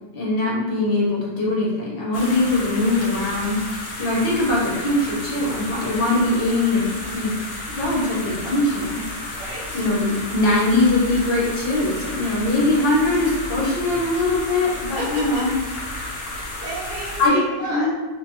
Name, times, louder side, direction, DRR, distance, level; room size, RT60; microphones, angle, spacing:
voice 1, 0.1-3.6 4.0-7.3 7.7-9.0 9.3-9.4 9.7-15.5 17.2-17.4 17.7-17.9, left 2 dB, 50° left, -6 dB, 0.9 m, -21 dB
sound 1, 2.1-17.3, left 1 dB, 70° left, 0.6 m, -32 dB
voice 2, 9.3-9.8 14.7-15.4 16.2-17.9, right 2 dB, 65° right, -7 dB, 1.1 m, -32 dB
2.6 x 2.5 x 2.7 m, 1.3 s
omnidirectional pair, 1.5 m